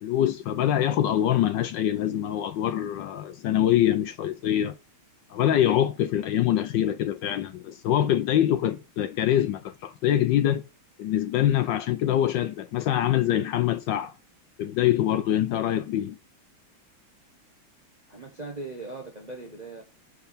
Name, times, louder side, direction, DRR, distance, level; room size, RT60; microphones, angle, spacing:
voice 1, 0.0-4.7 5.3-10.6 11.0-14.1 14.6-16.2, left 11 dB, 75° left, 1.1 m, -24 dB
voice 2, 18.1-19.8, right 2 dB, 30° right, 0.8 m, -39 dB
6.5 x 4.5 x 5.0 m
omnidirectional pair, 2.3 m